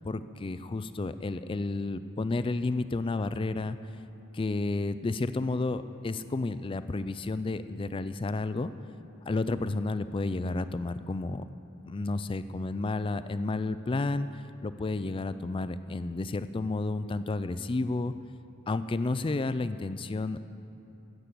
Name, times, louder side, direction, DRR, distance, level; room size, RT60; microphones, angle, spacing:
voice 1, 0.0-3.8 4.3-8.7 9.3-11.4 11.9-18.1 18.7-20.4, left 3 dB, 25° left, 13 dB, 0.3 m, -31 dB
15.5 x 8.0 x 6.9 m, 2.8 s
head